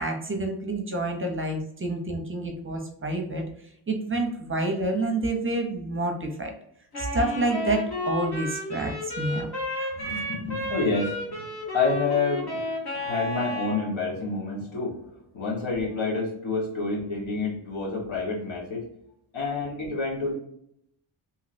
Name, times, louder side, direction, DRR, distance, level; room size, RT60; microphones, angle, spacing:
voice 1, 0.0-3.4 3.9-6.5 7.0-9.5 9.8-10.1, right 2 dB, 25° right, 2 dB, 0.6 m, -28 dB
Wind instrument woodwind instrument, 6.9-13.9, left 1 dB, 50° left, 1.4 m, -32 dB
voice 2, 10.0-18.8 19.3-20.3, left 3 dB, 70° left, -3 dB, 1.3 m, -29 dB
3.0 x 2.7 x 2.5 m, 0.73 s
wide cardioid pair, 110°, 49 cm